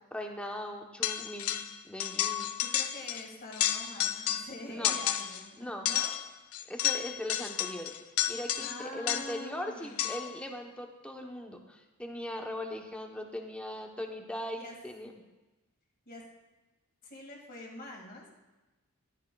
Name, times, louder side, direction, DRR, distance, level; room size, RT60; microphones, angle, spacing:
voice 1, 0.1-1.6 1.8-2.5 4.7-5.0 5.6-5.9 6.7-7.9 8.3-15.1, left 1 dB, 5° left, 2 dB, 0.8 m, -39 dB
sound 1, 1.0-1.7 2.0-3.2 3.5-4.5 4.8-5.4 5.9-9.5 10.0-10.4, left 11 dB, 75° left, 0.6 m, -32 dB
voice 2, 2.6-6.1 8.6-10.1 14.6-14.8 16.1-16.3 17.0-18.3, left 2 dB, 45° left, 0 dB, 1.9 m, -45 dB
15.0 x 11.0 x 2.3 m, 1.1 s
head